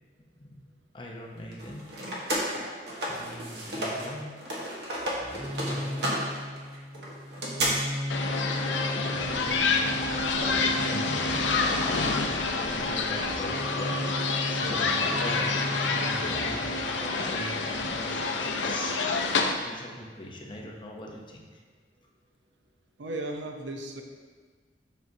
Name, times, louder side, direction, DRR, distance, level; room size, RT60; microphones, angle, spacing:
voice 1, 0.9-1.8 3.1-4.4 5.5-6.2 9.0-21.6, left 1 dB, 25° left, -1 dB, 0.8 m, -41 dB
sound 1, 1.5-4.1 4.4-7.7, right 1 dB, 65° right, 1.3 m, -32 dB
sound 2, 5.0-18.1, left 1 dB, 5° right, 0.3 m, -37 dB
sound 3, 8.1-19.5, left 3 dB, 85° left, 0.5 m, -28 dB
voice 2, 23.0-24.0, right 2 dB, 85° right, 3 dB, 0.7 m, -35 dB
7.3 x 5.9 x 2.8 m, 1.5 s
head